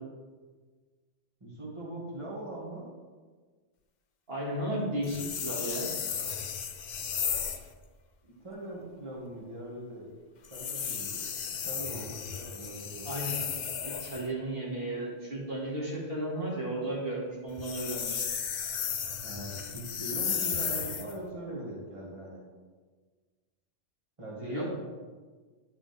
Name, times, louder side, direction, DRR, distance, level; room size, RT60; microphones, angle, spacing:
voice 1, 1.4-2.9 8.2-10.1 10.5-13.1 19.2-22.4 24.2-24.7, right 1 dB, 25° right, -6 dB, 2.3 m, -41 dB
voice 2, 4.3-5.9 13.0-13.4 13.8-18.2 24.4-24.7, right 1 dB, 55° right, -5 dB, 2.6 m, -34 dB
sound 1, 5.0-7.7 10.4-14.3 17.5-21.2, left 7 dB, 50° left, 0.6 m, -34 dB
10.5 x 5.9 x 3.5 m, 1.4 s
omnidirectional pair, 1.2 m